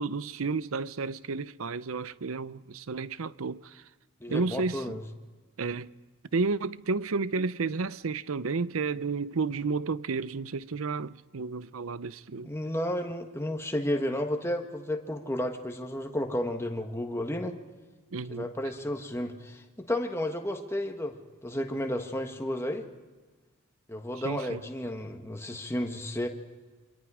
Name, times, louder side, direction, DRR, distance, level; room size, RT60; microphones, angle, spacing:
voice 1, 0.0-3.8 4.3-5.0 5.6-5.9 6.3-12.5 18.1-18.5 24.2-24.6, right 4 dB, 70° right, 0.6 m, -31 dB
voice 2, 4.2-5.0 12.4-17.6 18.3-21.2 21.4-22.8 23.9-26.3, left 1 dB, 10° left, 1.5 m, -32 dB
27.5 x 25.0 x 5.0 m
head